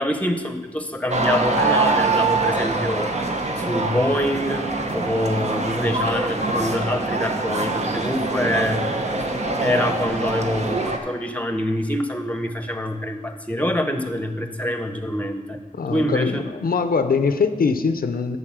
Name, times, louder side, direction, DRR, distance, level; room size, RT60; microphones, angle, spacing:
voice 1, 0.0-3.1 3.6-4.7 4.9-8.8 9.6-15.6 15.9-16.4, left 1 dB, 10° left, 7 dB, 0.9 m, -25 dB
sound 1, 1.1-11.0, right 3 dB, 50° right, 1.0 m, -24 dB
voice 2, 15.7-18.4, left 5 dB, 80° left, 9 dB, 0.6 m, -22 dB
11.5 x 4.1 x 7.4 m, 1.4 s
wide cardioid pair, 65°, 15 cm